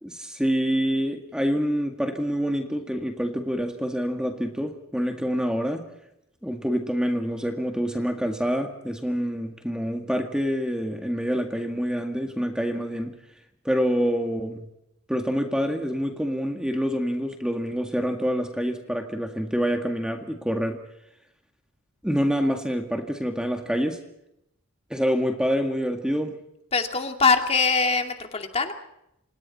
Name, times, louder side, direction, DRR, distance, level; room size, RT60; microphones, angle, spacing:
voice 1, 0.0-5.8 6.4-13.1 13.7-14.6 15.1-20.8 22.0-24.0 24.9-26.4, equal, 5° right, 4 dB, 1.9 m, -26 dB
voice 2, 26.7-28.7, left 4 dB, 30° left, 5 dB, 2.4 m, -22 dB
30.0 x 26.5 x 4.3 m, 0.81 s
head